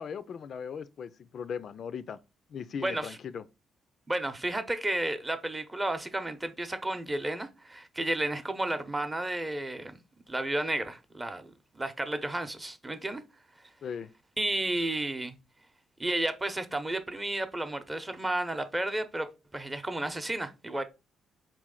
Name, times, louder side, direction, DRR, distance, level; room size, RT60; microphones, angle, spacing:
voice 1, 0.0-2.2 2.5-3.4 13.8-14.1, left 7 dB, 60° left, 0.3 m, -38 dB
voice 2, 2.8-3.2 4.1-10.0 10.3-13.2 14.4-15.4 16.0-20.8, right 1 dB, 20° right, 0.7 m, -32 dB
4.2 x 3.1 x 3.7 m
cardioid pair, 90°, 0 cm